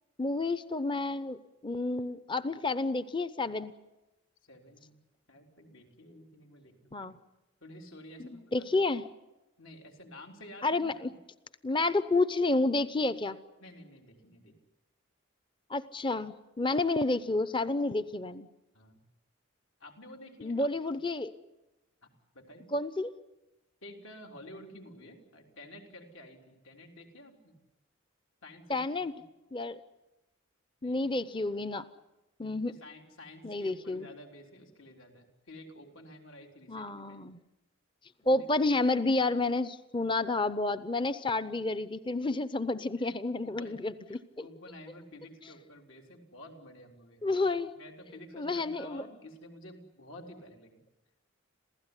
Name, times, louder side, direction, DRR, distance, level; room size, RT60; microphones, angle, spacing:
voice 1, 0.2-3.7 6.9-7.1 8.2-9.0 10.6-11.1 11.6-13.4 15.7-18.5 20.4-21.3 22.7-23.1 28.7-29.1 29.5-29.8 30.8-31.9 32.4-32.7 33.4-34.1 36.7-37.4 38.3-44.2 47.2-47.7 48.3-49.0, left 2 dB, 25° left, 14 dB, 0.8 m, -30 dB
voice 2, 4.4-5.0 5.3-7.1 7.6-8.7 9.6-11.1 13.6-14.5 18.7-19.0 19.8-20.9 22.0-22.1 22.3-22.7 23.8-27.6 28.4-29.2 30.8-31.1 32.7-37.2 38.2-38.5 43.0-43.1 43.4-50.8, left 1 dB, 75° left, 1 dB, 4.0 m, -51 dB
27.5 x 16.5 x 9.9 m, 1.0 s
head